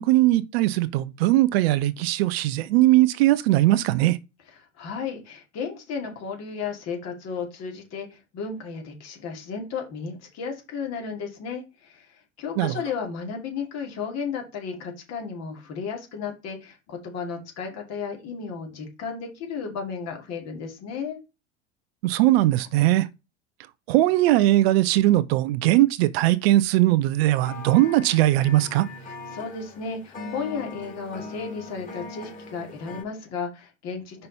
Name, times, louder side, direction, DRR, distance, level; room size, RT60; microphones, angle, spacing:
voice 1, 0.0-4.2 12.6-12.8 22.0-23.1 23.9-28.9, right 16 dB, 55° right, 0.6 m, -20 dB
voice 2, 4.5-21.2 29.0-34.3, left 5 dB, 45° left, 2.4 m, -34 dB
sound 1, 27.4-33.0, left 3 dB, 20° left, 2.8 m, -40 dB
5.5 x 5.3 x 4.1 m
figure-of-eight pair, 80°, 37 cm